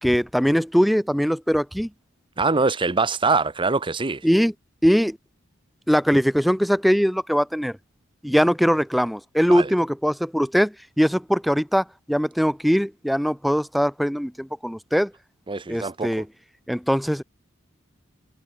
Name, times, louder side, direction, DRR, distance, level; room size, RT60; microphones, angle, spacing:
voice 1, 0.0-1.9 4.2-4.5 4.8-5.2 5.9-7.8 8.2-15.1 15.7-16.3 16.7-17.2, equal, ahead, 1.4 m, -21 dB
voice 2, 2.4-4.3 9.5-9.7 15.5-16.2, right 4 dB, 25° right, 0.8 m, -23 dB
head